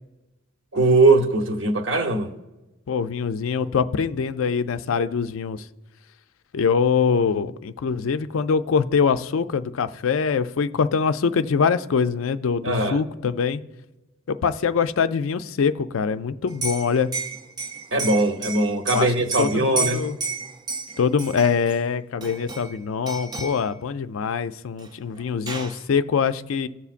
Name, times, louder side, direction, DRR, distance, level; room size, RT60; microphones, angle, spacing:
voice 1, 0.7-2.3 12.6-13.0 17.9-20.1, right 2 dB, 60° right, 0.9 m, -20 dB
voice 2, 2.9-5.6 6.5-13.6 14.3-17.1 18.9-20.2 21.0-26.7, left 6 dB, 70° left, 0.4 m, -23 dB
Liquid, 16.5-21.8 22.2-22.8 23.1-23.6 24.8-24.9 25.2-25.8, right 3 dB, 20° right, 0.4 m, -32 dB
17.0 x 6.9 x 2.5 m
head